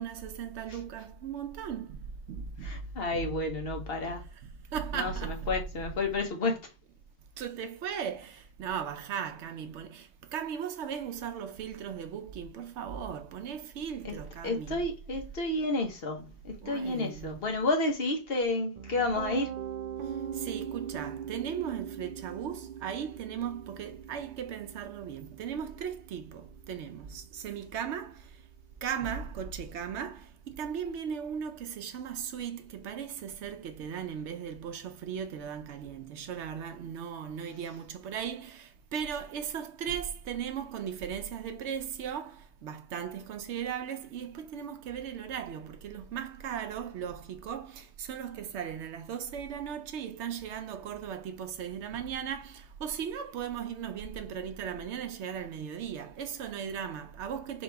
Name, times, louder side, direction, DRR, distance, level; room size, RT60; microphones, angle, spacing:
voice 1, 0.0-2.8 3.1-3.3 4.0-5.5 7.4-14.8 16.6-17.4 20.1-28.4 28.8-57.6, right 8 dB, 80° right, 0.9 m, -37 dB
voice 2, 2.6-4.2 4.9-6.6 14.0-14.2 14.4-19.5, left 2 dB, 60° left, 1.3 m, -31 dB
Piano, 18.8-30.7, right 8 dB, 60° right, 0.5 m, -42 dB
4.5 x 3.0 x 3.4 m
omnidirectional pair, 1.1 m